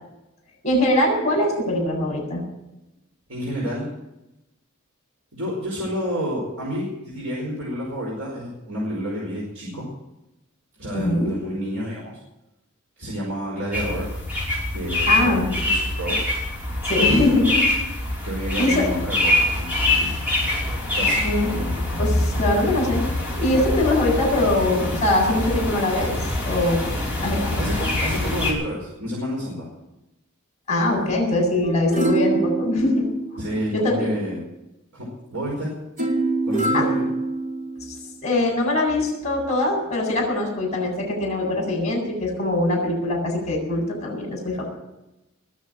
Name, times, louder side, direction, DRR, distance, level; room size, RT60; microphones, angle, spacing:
voice 1, 0.6-2.4 10.9-11.3 15.1-15.5 16.9-17.6 18.6-18.9 21.2-21.5 21.9-23.0 23.4-26.1 26.4-27.5 30.7-33.0 33.7-34.2 36.7-36.9 37.9-38.0 38.2-44.7, left 1 dB, 35° left, 0 dB, 8.0 m, -22 dB
voice 2, 3.3-3.9 5.3-9.9 10.8-12.2 13.0-14.1 14.7-16.2 18.2-20.1 20.9-21.8 27.6-29.7 33.4-34.4 34.9-35.7 36.4-37.1, equal, 80° right, -4 dB, 5.1 m, -29 dB
sound 1, 13.7-28.5, left 2 dB, 10° right, 5.4 m, -24 dB
sound 2, 31.6-33.9 36.0-38.0 38.5-38.6, right 3 dB, 40° right, 4.5 m, -25 dB
21.0 x 7.4 x 8.9 m, 0.92 s
head